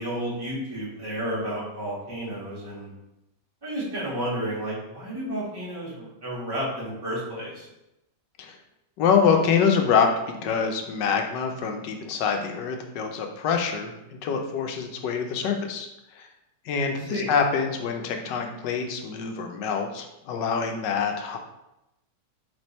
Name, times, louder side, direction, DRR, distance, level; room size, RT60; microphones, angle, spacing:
voice 1, 0.0-2.9 3.6-7.7 16.8-17.3, right 1 dB, 15° right, -7 dB, 1.3 m, -32 dB
voice 2, 9.0-10.1 10.3-16.3 16.6-21.4, left 6 dB, 85° left, 4 dB, 1.3 m, -25 dB
3.4 x 3.3 x 4.1 m, 0.89 s
omnidirectional pair, 1.8 m